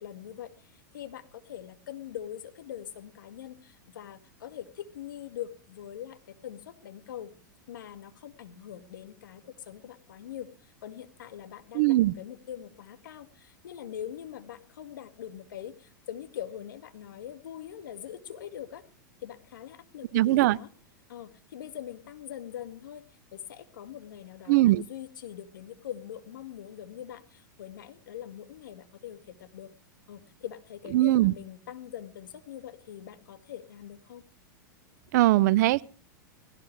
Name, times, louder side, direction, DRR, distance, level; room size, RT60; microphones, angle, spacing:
voice 1, 0.0-7.3 7.7-18.8 19.2-20.7 21.1-23.0 23.3-29.7 30.1-34.2, left 10 dB, 75° left, 2.2 m, -43 dB
voice 2, 11.7-12.1 20.1-20.6 24.5-24.8 30.9-31.3 35.1-35.8, right 16 dB, 60° right, 0.6 m, -21 dB
19.5 x 17.5 x 3.3 m
hypercardioid pair, 110°, 11 cm